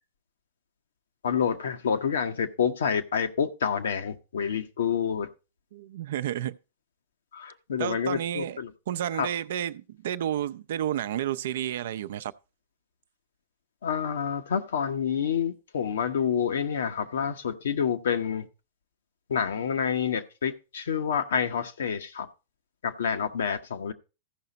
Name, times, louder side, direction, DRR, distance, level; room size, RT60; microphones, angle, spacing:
voice 1, 1.2-5.3 7.3-8.7 9.1-9.3 13.8-18.5 19.3-22.3 22.8-23.9, left 7 dB, 75° left, 1.1 m, -28 dB
voice 2, 5.7-6.6 7.8-8.6 8.9-12.3, right 11 dB, 65° right, 0.5 m, -31 dB
14.5 x 5.7 x 4.0 m
hypercardioid pair, 105°, 0 cm